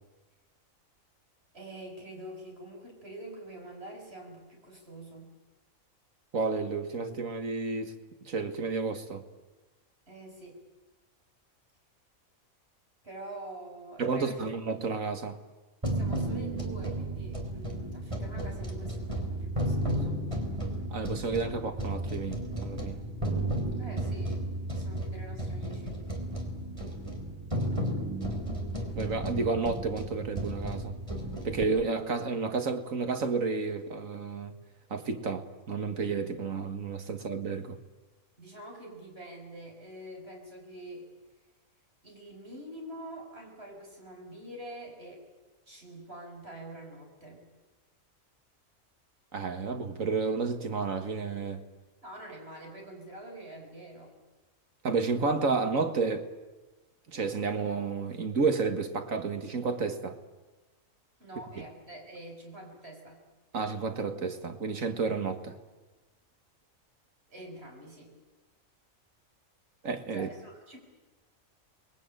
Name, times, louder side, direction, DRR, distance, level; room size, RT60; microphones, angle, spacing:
voice 1, 1.5-5.3 10.1-10.6 13.0-14.5 15.9-20.2 23.8-24.4 24.7-26.0 38.4-41.1 42.0-45.2 45.7-47.4 52.0-54.1 61.2-63.2 67.3-68.1 70.1-70.8, right 1 dB, 50° right, 6.7 m, -46 dB
voice 2, 6.3-7.9 8.2-9.2 14.0-15.4 20.9-23.0 29.0-30.9 31.4-34.5 34.9-37.8 49.3-51.6 54.8-56.3 57.1-60.2 63.5-65.6 69.8-70.3, right 4 dB, 75° right, 2.0 m, -31 dB
sound 1, 15.8-31.6, right 1 dB, 20° right, 3.7 m, -33 dB
29.0 x 21.5 x 9.0 m
omnidirectional pair, 1.4 m